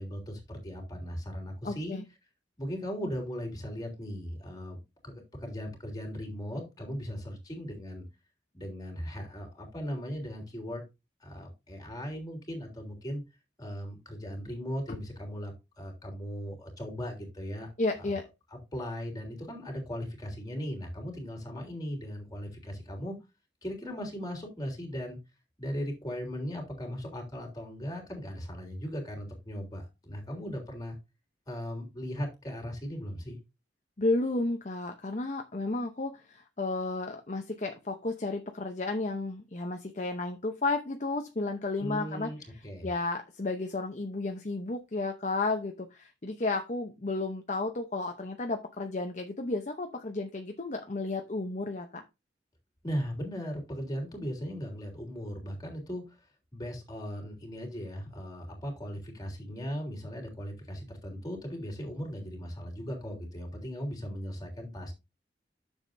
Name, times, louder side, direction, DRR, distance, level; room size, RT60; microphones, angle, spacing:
voice 1, 0.0-2.0 2.6-8.1 8.5-10.8 11.2-13.2 13.6-17.7 18.0-18.2 18.5-23.1 23.6-25.2 25.6-31.0 31.5-33.4 41.8-42.9 52.8-56.2 56.5-64.9, equal, 20° left, 0 dB, 3.3 m, -38 dB
voice 2, 1.6-2.0 14.9-15.0 17.8-18.2 34.0-42.3 42.8-52.0, left 2 dB, 40° left, 5 dB, 0.8 m, -32 dB
10.5 x 7.3 x 2.6 m, 0.25 s
head